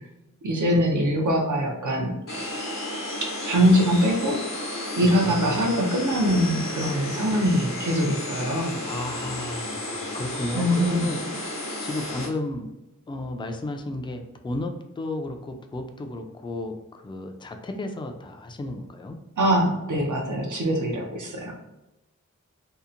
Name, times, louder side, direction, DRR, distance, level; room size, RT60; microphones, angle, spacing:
voice 1, 0.4-2.1 3.2-4.4 4.9-8.8 10.5-11.1 19.4-21.5, equal, 70° right, 0 dB, 0.7 m, -23 dB
sound 1, 2.3-12.3, left 1 dB, 90° left, 0.8 m, -33 dB
voice 2, 5.0-5.7 8.8-12.7 13.1-19.2, left 2 dB, 15° left, 5 dB, 0.3 m, -33 dB
2.8 x 2.0 x 2.5 m, 0.96 s
wide cardioid pair, 40°, 31 cm